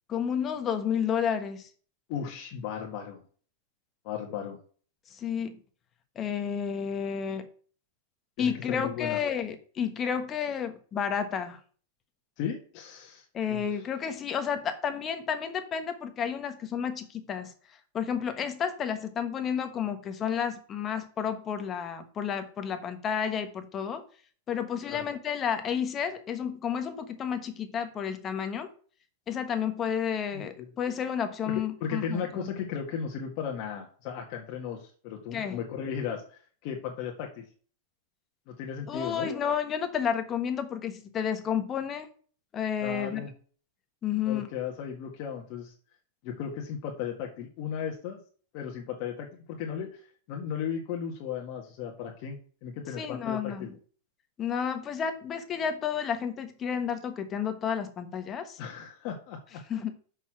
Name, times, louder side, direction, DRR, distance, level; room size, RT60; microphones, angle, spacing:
voice 1, 0.1-1.7 5.1-5.6 6.1-7.5 8.4-11.6 13.3-17.5 17.9-24.0 24.5-28.7 29.3-32.5 35.3-35.6 38.9-42.1 42.5-43.3 44.0-44.5 53.0-53.7 54.4-58.6 59.7-59.9, left 7 dB, 25° left, 8 dB, 1.3 m, -31 dB
voice 2, 2.1-3.2 4.0-4.6 8.4-9.2 12.4-13.6 24.9-25.1 30.3-30.7 31.5-37.5 38.5-39.3 42.8-43.3 44.2-45.7 46.2-48.2 48.5-50.0 50.3-53.7 58.6-59.6, left 7 dB, 45° left, 1 dB, 1.7 m, -36 dB
6.5 x 5.5 x 6.1 m, 0.42 s
supercardioid pair, 145°, 0 cm